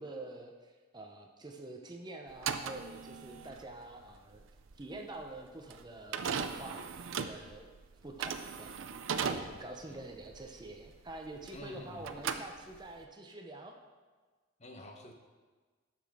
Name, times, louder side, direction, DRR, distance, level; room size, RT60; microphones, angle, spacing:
voice 1, 0.0-4.4 4.8-7.7 8.0-13.8, right 2 dB, 20° right, 3 dB, 0.6 m, -47 dB
sound 1, 2.3-11.7 12.0-13.0, right 6 dB, 90° right, 0.5 m, -38 dB
voice 2, 11.5-12.1 14.6-15.1, left 1 dB, 35° left, 3 dB, 0.9 m, -49 dB
12.5 x 5.8 x 3.5 m, 1.4 s
head